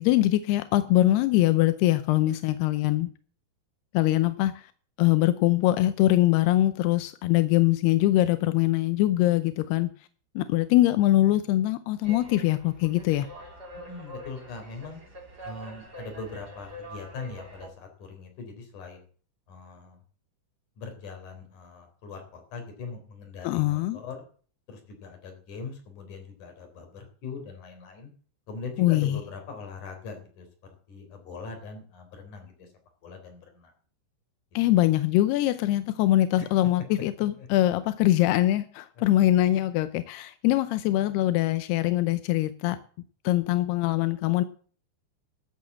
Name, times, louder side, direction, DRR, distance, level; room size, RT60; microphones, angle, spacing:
voice 1, 0.0-3.1 3.9-4.7 5.0-9.9 10.4-13.3 23.4-24.0 28.8-29.2 34.5-42.8 43.2-44.4, left 15 dB, 80° left, 12 dB, 2.4 m, -23 dB
sound 1, 12.0-17.7, equal, 25° right, 2.5 m, -44 dB
voice 2, 13.9-15.0 15.4-19.0 19.5-20.0 20.8-24.2 24.7-28.1 28.5-30.5 30.9-32.7 33.0-33.7 36.4-36.5 37.4-37.5 39.0-39.1, left 4 dB, 45° left, 4 dB, 4.8 m, -41 dB
13.0 x 8.5 x 7.4 m, 0.44 s
omnidirectional pair, 5.4 m